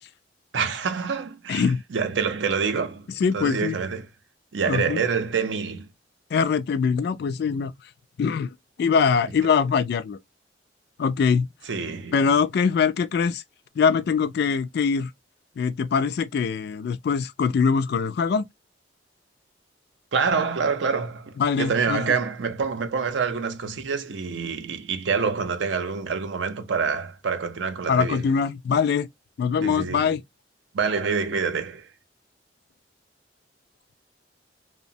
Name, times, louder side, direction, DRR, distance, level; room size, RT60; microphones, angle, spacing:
voice 1, 0.5-3.1 3.3-4.1 4.5-5.9 11.7-12.2 20.1-28.3 29.6-30.1 30.7-31.9, right 5 dB, 80° right, 0.5 m, -26 dB
voice 2, 1.5-1.8 3.2-3.8 4.7-5.0 6.3-7.7 8.2-8.5 8.8-10.2 11.0-11.5 12.1-13.4 13.8-15.1 15.6-18.5 21.4-22.2 27.9-29.1 29.4-30.2, left 6 dB, 60° left, 0.3 m, -23 dB
2.8 x 2.1 x 2.6 m
head